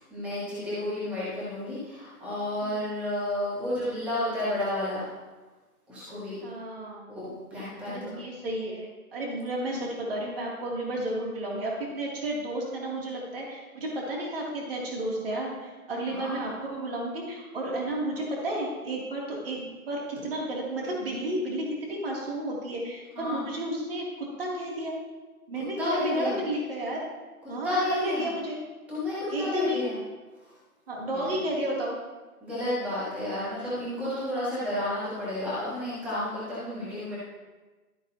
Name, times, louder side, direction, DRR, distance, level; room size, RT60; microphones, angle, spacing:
voice 1, 0.1-5.1 5.9-6.4 7.2-8.2 16.1-16.3 23.1-23.4 25.8-26.3 27.6-28.3 28.9-29.9 31.1-31.4 32.4-37.2, left 1 dB, 5° right, -10 dB, 1.4 m, -31 dB
voice 2, 6.4-7.1 7.8-24.9 25.5-27.0 27.5-28.6 29.3-29.8 30.9-32.0, right 1 dB, 40° right, -3 dB, 2.9 m, -32 dB
13.0 x 8.2 x 2.9 m, 1.3 s
hypercardioid pair, 165°, 45 cm